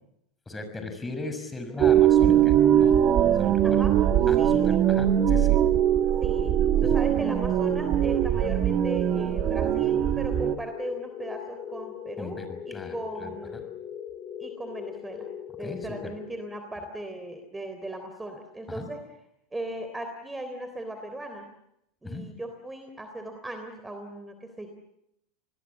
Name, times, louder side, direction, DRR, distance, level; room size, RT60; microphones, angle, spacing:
voice 1, 0.5-3.0 3.3-3.9 4.3-5.6 12.2-13.6 15.6-16.1 18.7-18.8 22.0-22.3, left 3 dB, 15° left, 7 dB, 6.4 m, -38 dB
voice 2, 1.6-2.0 3.6-3.9 4.4-4.8 6.2-13.7 14.4-15.3 15.6-19.0 19.5-21.5 22.0-24.7, right 1 dB, 10° right, 7 dB, 3.5 m, -38 dB
sound 1, 1.8-10.5, right 10 dB, 45° right, 1.7 m, -21 dB
sound 2, 3.7-16.8, left 9 dB, 40° left, 8.0 m, -40 dB
28.0 x 20.5 x 7.4 m, 0.79 s
hypercardioid pair, 95°, 0 cm